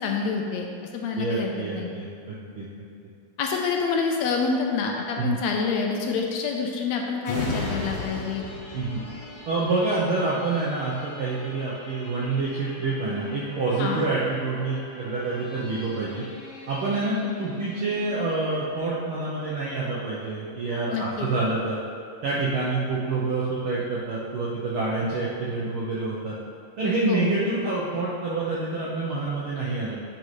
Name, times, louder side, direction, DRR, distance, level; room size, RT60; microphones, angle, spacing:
voice 1, 0.0-0.7 0.9-1.9 3.4-8.4 13.8-14.1 20.9-21.3 27.1-27.3, left 5 dB, 80° left, 1 dB, 1.8 m, -27 dB
voice 2, 1.1-2.6 5.2-5.4 8.7-9.0 9.5-16.2 16.7-21.8 22.2-26.4 26.8-30.0, right 3 dB, 75° right, -7 dB, 1.2 m, -27 dB
sound 1, 7.2-20.5 21.0-21.1, left 2 dB, 40° left, 2.1 m, -39 dB
9.1 x 5.4 x 3.2 m, 2.3 s
omnidirectional pair, 3.3 m